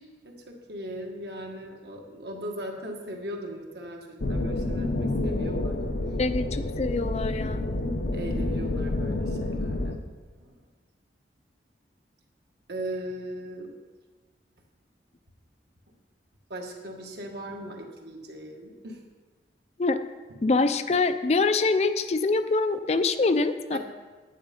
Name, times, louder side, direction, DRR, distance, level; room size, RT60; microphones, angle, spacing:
voice 1, 0.2-5.8 8.1-10.0 10.4-10.7 12.7-13.7 16.5-19.0 20.3-20.4 23.7-23.8, right 1 dB, 65° right, 2 dB, 1.7 m, -38 dB
sound 1, 4.2-10.0, left 2 dB, 70° left, 0.8 m, -28 dB
voice 2, 6.2-7.7 19.8-20.0 20.4-23.8, left 3 dB, 35° left, 10 dB, 0.4 m, -25 dB
10.0 x 9.2 x 5.3 m, 1.4 s
head